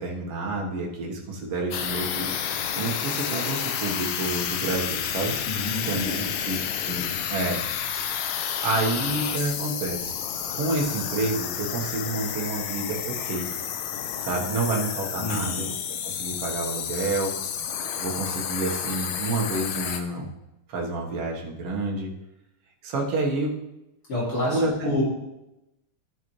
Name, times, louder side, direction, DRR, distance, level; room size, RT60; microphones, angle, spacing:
voice 1, 0.0-2.3 2.8-5.3 5.9-6.1 6.4-6.6 6.9-7.6 8.6-10.1 10.5-13.5 14.2-15.7 16.0-17.4 18.0-20.3 20.7-22.1 22.8-23.5 24.5-25.0, right 2 dB, 55° right, -1 dB, 2.1 m, -29 dB
sound 1, 1.7-20.0, left 8 dB, 75° left, 1.9 m, -30 dB
voice 2, 5.5-6.4 7.0-7.1 15.2-15.6 24.1-25.0, left 1 dB, 45° left, -7 dB, 3.7 m, -29 dB
13.0 x 6.1 x 3.2 m, 0.92 s
omnidirectional pair, 3.7 m